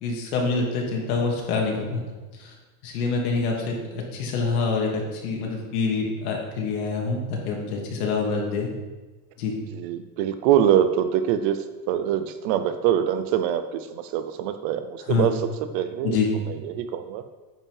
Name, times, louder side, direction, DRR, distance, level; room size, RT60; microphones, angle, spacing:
voice 1, 0.0-2.0 2.3-2.5 2.8-8.7 9.4-9.5 15.1-15.3 16.0-16.3, left 4 dB, 80° left, -1 dB, 2.5 m, -26 dB
voice 2, 9.7-11.6 11.9-15.4 15.7-16.2 16.5-17.2, right 10 dB, 40° right, 10 dB, 0.4 m, -24 dB
9.5 x 5.4 x 5.5 m, 1.2 s
cardioid pair, 175°, 43 cm